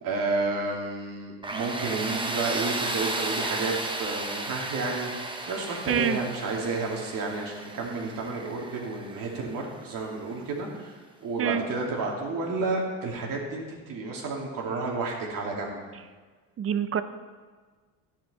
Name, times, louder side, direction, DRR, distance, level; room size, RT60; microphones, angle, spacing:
voice 1, 0.0-15.8, right 3 dB, 60° right, -1 dB, 2.7 m, -31 dB
Tools, 1.4-10.2, right 2 dB, 15° right, 1.1 m, -34 dB
voice 2, 5.9-6.2 11.4-11.6 16.6-17.0, right 9 dB, 35° right, 12 dB, 0.7 m, -25 dB
12.0 x 10.0 x 4.2 m, 1.4 s
cardioid pair, 110°, 37 cm